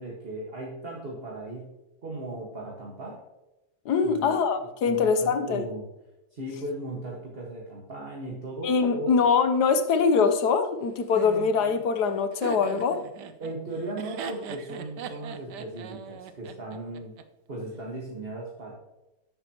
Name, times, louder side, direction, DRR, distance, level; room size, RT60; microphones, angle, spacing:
voice 1, 0.0-1.7 2.0-3.2 4.0-4.4 4.8-5.9 6.3-9.2 13.4-17.1 17.5-18.7, right 2 dB, 30° right, 1.8 m, -37 dB
voice 2, 3.9-5.7 8.6-13.0, left 5 dB, 60° left, 1.3 m, -23 dB
Laughter, 11.1-17.2, right 7 dB, 65° right, 1.3 m, -40 dB
12.0 x 8.9 x 3.0 m
omnidirectional pair, 2.1 m